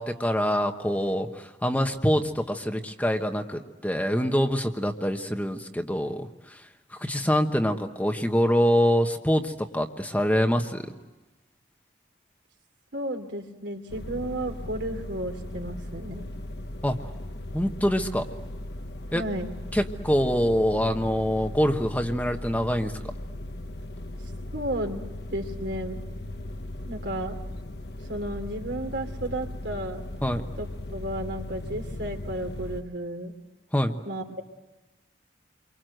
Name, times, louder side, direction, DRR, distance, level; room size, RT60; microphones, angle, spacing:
voice 1, 0.0-10.8 16.8-17.0 17.5-18.3 19.1-19.2 19.7-22.9 30.2-30.4 33.7-34.0, equal, 10° left, 5 dB, 1.1 m, -25 dB
voice 2, 12.9-16.3 19.1-19.5 24.5-25.0 25.3-26.0 26.9-27.4 28.1-30.0 30.6-33.3 34.0-34.4, right 1 dB, 70° right, 4 dB, 3.0 m, -33 dB
sound 1, 13.9-32.8, left 1 dB, 60° left, 1.2 m, -38 dB
29.0 x 24.0 x 7.9 m, 1.1 s
head